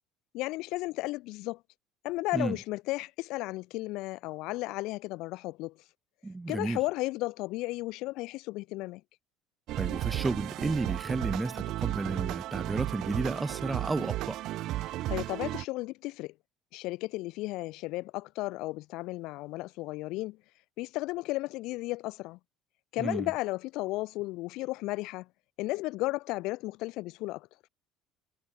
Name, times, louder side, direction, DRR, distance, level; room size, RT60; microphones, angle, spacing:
voice 1, 0.3-1.6 2.0-5.7 6.5-9.0 15.1-16.3 16.7-20.4 20.8-22.4 22.9-25.3 25.6-27.5, left 20 dB, 70° left, 1.2 m, -34 dB
voice 2, 6.2-6.8 9.8-14.4 23.0-23.3, right 2 dB, 15° right, 1.5 m, -32 dB
sound 1, 9.7-15.6, right 15 dB, 65° right, 0.8 m, -34 dB
supercardioid pair, 90°, 0 cm